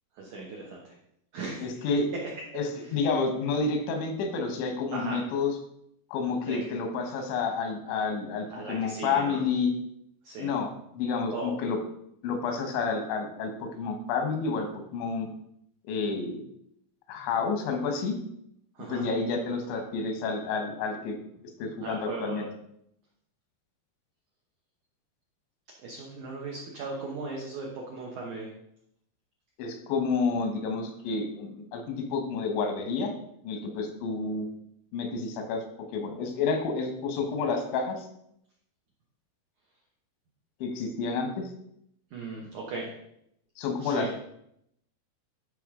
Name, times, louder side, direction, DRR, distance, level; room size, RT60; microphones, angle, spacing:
voice 1, 0.2-0.9 1.3-1.7 2.2-2.3 4.9-5.2 6.5-6.6 8.5-9.4 10.2-10.5 11.3-11.5 18.8-19.1 21.8-22.5 25.8-28.5 42.1-42.9 43.8-44.1, right 3 dB, 80° right, -1 dB, 1.7 m, -37 dB
voice 2, 1.6-2.1 2.5-5.6 6.1-9.7 10.4-11.8 12.2-15.3 15.9-16.5 17.1-18.2 18.9-21.2 21.6-22.5 29.6-33.1 33.4-34.5 34.9-35.6 35.9-38.1 40.6-41.5 43.6-44.2, left 4 dB, 90° left, 5 dB, 3.5 m, -29 dB
12.0 x 4.8 x 3.7 m, 0.75 s
omnidirectional pair, 5.1 m